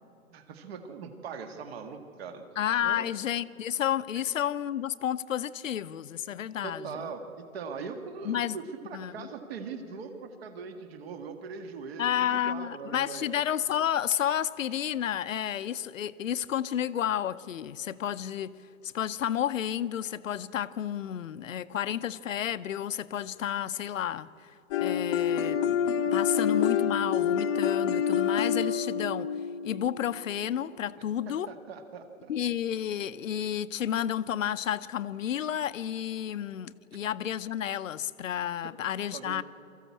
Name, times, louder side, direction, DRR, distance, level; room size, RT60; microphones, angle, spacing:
voice 1, 0.3-2.4 2.8-3.1 6.6-7.2 7.5-13.3 31.3-32.3 39.1-39.4, right 5 dB, 45° right, 7 dB, 1.8 m, -41 dB
voice 2, 2.6-7.1 8.2-8.6 8.9-9.3 12.0-18.5 18.8-29.3 29.6-31.5 32.3-39.4, left 10 dB, 65° left, 14 dB, 0.8 m, -31 dB
sound 1, 24.7-30.5, left 7 dB, 20° left, 0.9 m, -27 dB
23.5 x 14.5 x 8.5 m, 2.9 s
hypercardioid pair, 155°, 43 cm